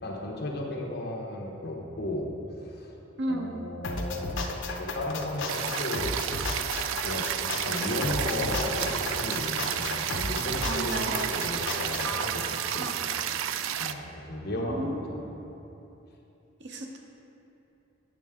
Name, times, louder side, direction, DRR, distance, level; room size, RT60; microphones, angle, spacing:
voice 1, 0.0-2.3 2.6-2.9 3.3-6.2 7.0-7.3 7.5-12.9 13.8-15.4, left 1 dB, 55° left, -1 dB, 1.1 m, -34 dB
voice 2, 3.2-3.6 10.7-11.2 12.0-13.0 14.6-15.1 16.6-17.0, right 1 dB, 60° right, 1 dB, 0.8 m, -34 dB
sound 1, 3.8-12.1, left 3 dB, 70° left, 0.7 m, -34 dB
sound 2, 5.5-13.9, right 9 dB, 85° right, 0.3 m, -31 dB
9.1 x 6.6 x 3.6 m, 2.9 s
head